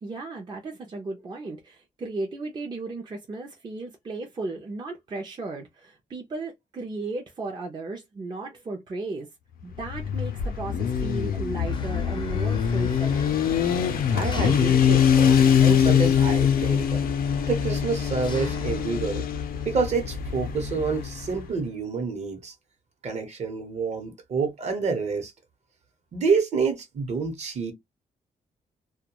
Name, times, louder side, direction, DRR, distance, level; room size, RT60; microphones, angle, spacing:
voice 1, 0.0-9.3 9.6-13.3, right 3 dB, 30° right, 0.5 m, -35 dB
Motorcycle, 9.7-21.4, left 8 dB, 85° left, 0.5 m, -23 dB
Engine, 11.7-19.1, left 4 dB, 35° left, 0.5 m, -41 dB
voice 2, 14.1-17.0 17.5-19.3 19.6-22.5 23.0-25.3 26.1-27.7, right 5 dB, 50° right, 0.9 m, -28 dB
2.2 x 2.2 x 2.8 m
wide cardioid pair, 145°, 15 cm